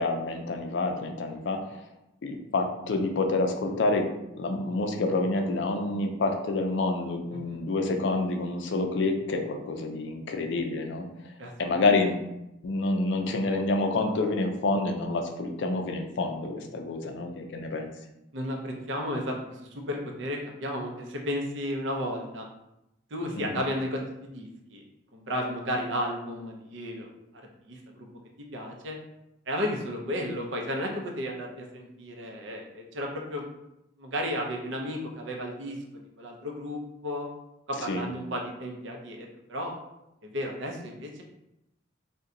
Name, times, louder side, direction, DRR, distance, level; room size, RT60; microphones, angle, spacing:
voice 1, 0.0-1.6 2.2-4.1 4.3-11.1 11.6-12.2 12.6-17.9 23.4-23.6 37.8-38.1, left 3 dB, 70° left, 4 dB, 0.4 m, -28 dB
voice 2, 11.4-11.8 18.3-19.6 19.9-22.5 23.1-24.8 25.1-27.1 27.7-28.1 28.4-29.0 29.5-33.4 34.0-35.8 36.2-37.3 37.7-39.7 40.2-41.2, equal, 75° right, 1 dB, 0.6 m, -33 dB
2.7 x 2.2 x 3.7 m, 0.87 s
head